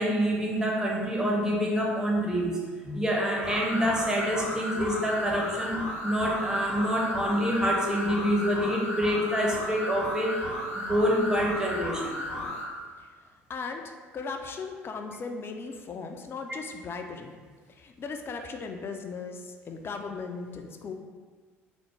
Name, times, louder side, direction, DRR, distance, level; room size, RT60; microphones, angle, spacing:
voice 1, 0.0-2.5 2.9-10.4 10.9-12.2, equal, 10° right, -2 dB, 0.7 m, -26 dB
sound 1, 2.9-6.9, left 2 dB, 40° right, 1.4 m, -48 dB
sound 2, 3.4-12.7, left 1 dB, 85° left, 0.7 m, -34 dB
voice 2, 13.5-17.4 17.7-20.9, left 4 dB, 35° left, 4 dB, 0.3 m, -37 dB
3.4 x 2.0 x 3.1 m, 1.5 s
figure-of-eight pair, 55°, 7 cm